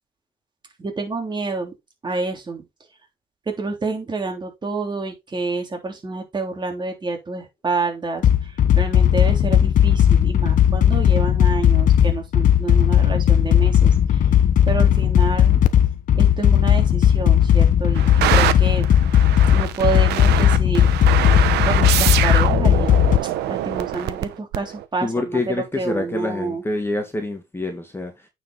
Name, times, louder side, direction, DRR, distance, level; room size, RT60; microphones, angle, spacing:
voice 1, 0.8-1.7 2.0-2.6 3.5-14.4 14.7-15.6 16.2-18.0 18.3-18.8 19.5-20.9 21.6-26.6, right 3 dB, 25° right, 3.3 m, -28 dB
sound 1, 8.2-23.2, left 10 dB, 50° left, 1.0 m, -16 dB
sound 2, 17.9-24.8, right 13 dB, 80° right, 0.9 m, -24 dB
voice 2, 25.0-28.3, left 2 dB, 15° left, 1.9 m, -26 dB
9.0 x 5.1 x 4.0 m
cardioid pair, 110°, 17 cm